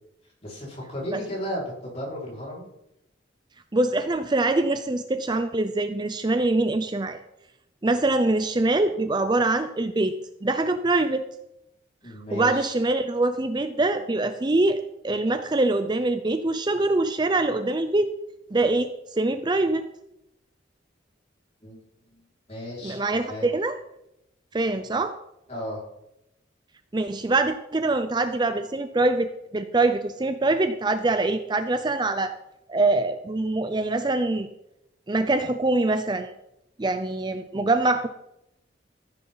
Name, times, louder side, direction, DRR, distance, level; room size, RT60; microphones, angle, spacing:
voice 1, 0.4-2.6 12.0-12.7 21.6-21.8 22.1-22.2 22.5-23.5 25.5-25.8, equal, 35° left, -5 dB, 5.2 m, -34 dB
voice 2, 3.7-7.2 7.8-10.1 10.4-11.3 12.3-18.1 18.5-19.8 22.8-23.7 24.5-25.2 26.9-32.3 32.7-34.5 35.1-36.3 36.8-38.1, right 2 dB, 25° right, 9 dB, 0.5 m, -24 dB
14.5 x 9.6 x 4.0 m, 0.84 s
head